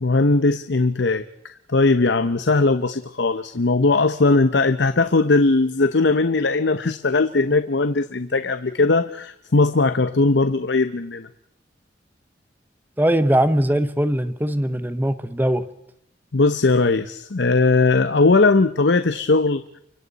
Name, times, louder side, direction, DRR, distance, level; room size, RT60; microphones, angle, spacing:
voice 1, 0.0-11.3 16.3-19.6, left 3 dB, 85° left, 11 dB, 0.8 m, -19 dB
voice 2, 13.0-15.6, right 1 dB, 10° right, 12 dB, 0.9 m, -20 dB
29.5 x 24.5 x 4.1 m, 0.75 s
head